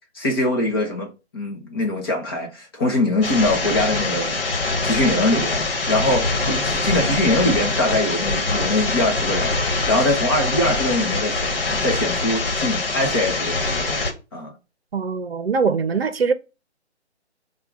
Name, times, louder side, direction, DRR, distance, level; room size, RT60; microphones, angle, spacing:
voice 1, 0.1-4.4 4.8-14.5, left 1 dB, 20° left, 0.6 m, -23 dB
sound 1, 3.2-14.1, left 3 dB, 55° left, 1.3 m, -24 dB
voice 2, 14.9-16.3, right 5 dB, 60° right, 0.7 m, -22 dB
5.6 x 2.3 x 3.4 m
figure-of-eight pair, 150°, 34 cm